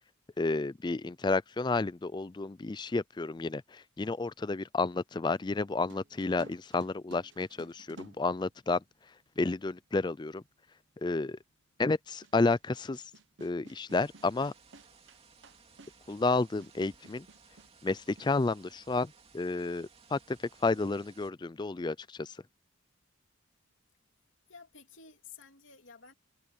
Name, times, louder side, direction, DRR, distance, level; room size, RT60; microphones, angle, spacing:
voice 1, 0.4-8.8 9.4-10.4 11.0-11.4 11.8-13.0 13.4-14.5 16.1-17.3 17.8-22.4, left 3 dB, 20° left, 0.4 m, -31 dB
sound 1, 5.9-9.1 10.0-10.1 12.2-18.4, right 3 dB, 60° right, 1.0 m, -55 dB
sound 2, 13.9-21.3, right 5 dB, 30° right, 2.8 m, -60 dB
voice 2, 24.5-26.1, left 5 dB, 75° left, 2.9 m, -52 dB
head